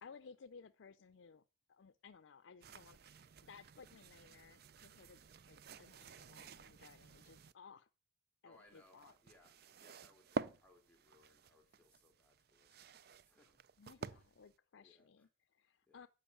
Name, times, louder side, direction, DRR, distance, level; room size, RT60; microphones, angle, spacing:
voice 1, 0.0-1.4 1.7-7.9 8.4-9.1 13.8-16.1, left 5 dB, 80° left, 12 dB, 0.5 m, -59 dB
sound 1, 2.6-7.5 8.5-14.5, right 4 dB, 55° right, 0.5 m, -50 dB
voice 2, 8.4-13.6 14.0-14.3 14.8-15.3 15.9-16.0, left 1 dB, 5° left, 0 dB, 3.1 m, -69 dB
12.5 x 5.3 x 8.5 m, 0.35 s
head